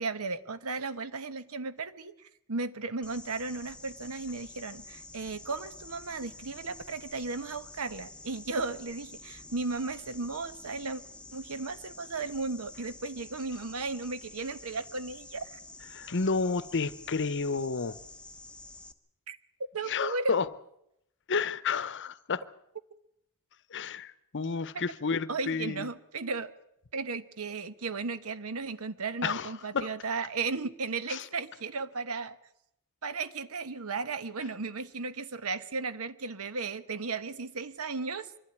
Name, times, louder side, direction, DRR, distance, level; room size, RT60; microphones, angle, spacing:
voice 1, 0.0-11.0 11.3-15.6 19.3-19.4 19.7-20.4 24.7-24.9 25.3-26.5 26.9-32.4 33.0-38.4, right 4 dB, 70° right, 1.1 m, -35 dB
sound 1, 3.0-18.9, left 2 dB, 5° left, 1.1 m, -49 dB
voice 2, 15.9-18.0 19.9-20.5 21.3-22.4 23.7-25.9 29.2-29.9 31.1-31.2, left 4 dB, 55° left, 0.8 m, -31 dB
24.5 x 12.0 x 9.7 m
head